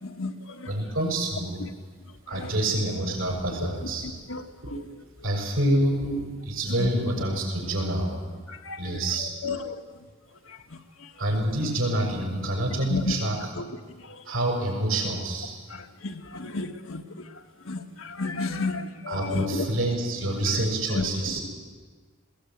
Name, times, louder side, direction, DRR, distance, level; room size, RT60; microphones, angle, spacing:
voice 1, 0.0-0.7 2.3-2.5 4.3-4.4 6.8-6.9 8.5-8.8 9.2-9.7 12.9-13.2 13.6-13.7 15.7-17.3 17.6-19.7 20.9-21.0, left 3 dB, 80° left, 5 dB, 1.4 m, -32 dB
voice 2, 0.7-1.7 2.3-4.1 4.6-4.8 5.2-8.2 8.8-9.3 11.2-13.5 14.2-15.6 19.1-21.4, right 1 dB, 75° right, 1 dB, 6.9 m, -27 dB
20.5 x 18.0 x 9.2 m, 1.5 s
head